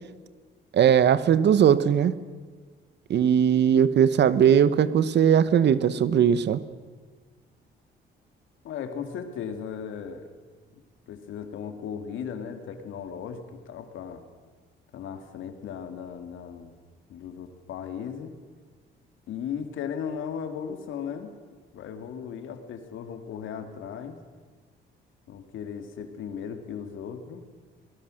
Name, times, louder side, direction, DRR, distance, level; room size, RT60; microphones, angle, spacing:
voice 1, 0.7-2.2 3.1-6.6, right 8 dB, 60° right, 16 dB, 1.0 m, -19 dB
voice 2, 8.6-10.3 11.1-14.2 14.9-16.7 17.1-18.3 19.3-21.3 21.7-24.2 25.3-27.4, left 7 dB, 80° left, 7 dB, 2.4 m, -36 dB
24.0 x 19.0 x 6.5 m, 1.4 s
cardioid pair, 90°, 20 cm